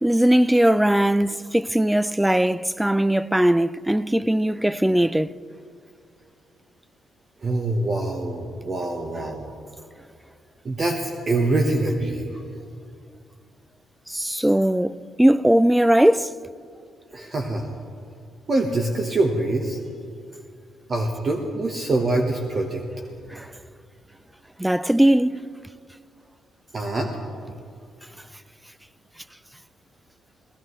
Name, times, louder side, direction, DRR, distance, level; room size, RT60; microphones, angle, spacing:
voice 1, 0.0-5.4 14.1-16.3 23.3-23.5 24.6-25.4, right 1 dB, 5° right, 0.3 m, -19 dB
voice 2, 7.4-9.4 10.6-12.4 17.1-17.8 18.5-19.8 20.9-22.8 26.7-27.2, right 2 dB, 40° right, 1.2 m, -24 dB
19.0 x 16.0 x 3.2 m
cardioid pair, 90°, 0 cm